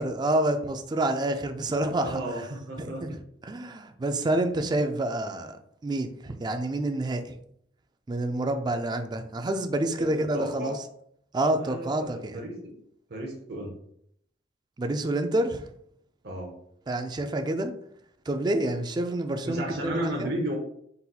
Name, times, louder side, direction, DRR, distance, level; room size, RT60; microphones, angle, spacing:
voice 1, 0.0-2.2 2.8-5.6 5.8-7.4 8.1-10.8 11.3-12.4 14.8-15.6 16.9-17.7 18.3-20.3, right 1 dB, 25° right, 7 dB, 0.3 m, -28 dB
voice 2, 2.0-3.0 4.2-4.3 10.0-10.8 11.6-12.7 13.1-13.7 16.2-16.5 19.4-20.5, right 1 dB, 60° right, -1 dB, 0.7 m, -33 dB
4.1 x 4.0 x 2.3 m, 0.70 s
head